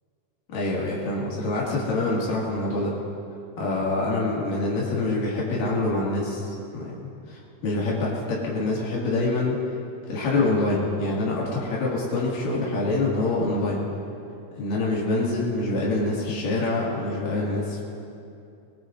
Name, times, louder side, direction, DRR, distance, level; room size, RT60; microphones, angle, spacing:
voice 1, 0.5-2.9 3.6-6.5 6.7-8.1 8.4-9.6 10.1-13.8 14.6-17.8, left 2 dB, 90° left, -5 dB, 3.8 m, -25 dB
24.0 x 19.5 x 2.5 m, 2.6 s
omnidirectional pair, 3.8 m